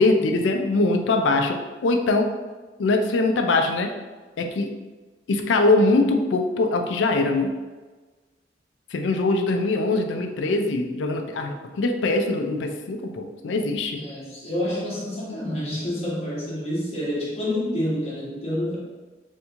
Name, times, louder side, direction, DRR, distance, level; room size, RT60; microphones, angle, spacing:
voice 1, 0.0-2.3 2.8-3.9 4.4-4.7 5.3-7.5 8.9-14.0, left 2 dB, 85° left, 4 dB, 0.4 m, -22 dB
voice 2, 13.9-18.8, left 1 dB, 35° left, -6 dB, 1.0 m, -28 dB
2.9 x 2.6 x 3.4 m, 1.3 s
head